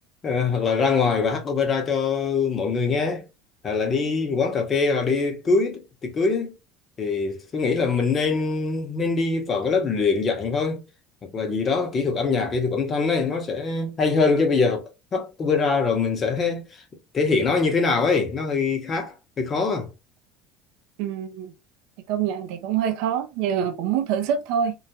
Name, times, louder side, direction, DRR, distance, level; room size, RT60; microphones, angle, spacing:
voice 1, 0.2-3.2 3.6-6.5 7.0-10.8 11.2-16.6 17.1-19.9, left 4 dB, 30° left, 0.7 m, -23 dB
voice 2, 21.0-21.5 22.1-24.7, right 8 dB, 75° right, 0.4 m, -25 dB
2.3 x 2.1 x 2.7 m
cardioid pair, 130°, 0 cm